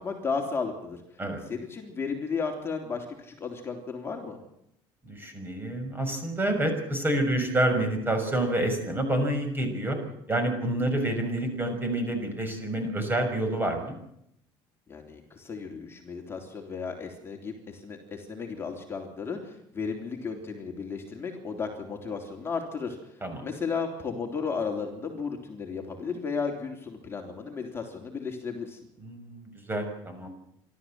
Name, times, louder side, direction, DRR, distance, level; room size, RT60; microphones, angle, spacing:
voice 1, 0.0-1.0 1.5-4.4 14.9-28.8, left 5 dB, 25° left, 1 dB, 3.6 m, -34 dB
voice 2, 5.1-10.0 10.3-14.0 23.2-23.4 29.0-30.3, right 1 dB, 20° right, 6 dB, 6.1 m, -28 dB
28.5 x 13.0 x 7.7 m, 0.77 s
supercardioid pair, 105°, 11 cm